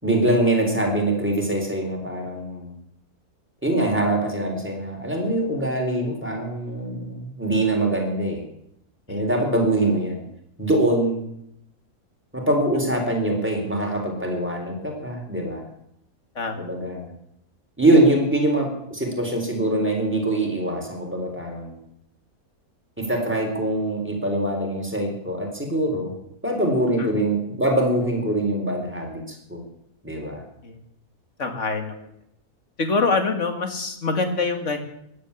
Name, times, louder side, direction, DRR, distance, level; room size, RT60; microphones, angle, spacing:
voice 1, 0.0-2.7 3.6-8.4 9.1-10.2 10.6-11.2 12.3-15.7 16.6-17.1 17.8-21.8 23.0-26.1 26.4-29.6 30.0-30.4, right 1 dB, 5° right, 1 dB, 4.1 m, -23 dB
voice 2, 31.4-31.9 32.8-34.8, left 3 dB, 50° left, 6 dB, 2.3 m, -25 dB
16.0 x 11.0 x 7.2 m, 0.75 s
omnidirectional pair, 1.6 m